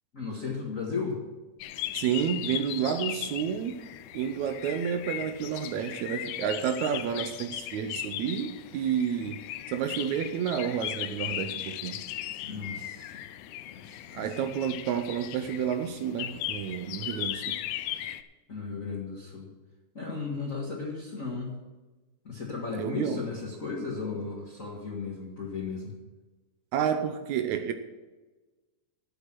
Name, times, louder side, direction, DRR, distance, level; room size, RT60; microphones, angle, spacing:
voice 1, 0.1-1.2 12.4-13.1 13.7-14.2 18.5-19.5 19.9-21.5 22.2-25.9, left 4 dB, 35° left, 1.4 m, -35 dB
sound 1, 1.6-18.2, left 13 dB, 85° left, 2.1 m, -37 dB
voice 2, 1.9-3.9 4.1-9.4 9.7-12.1 14.1-17.6 22.8-23.2 26.7-27.7, right 8 dB, 75° right, 1.9 m, -30 dB
11.5 x 8.2 x 6.0 m
omnidirectional pair, 3.6 m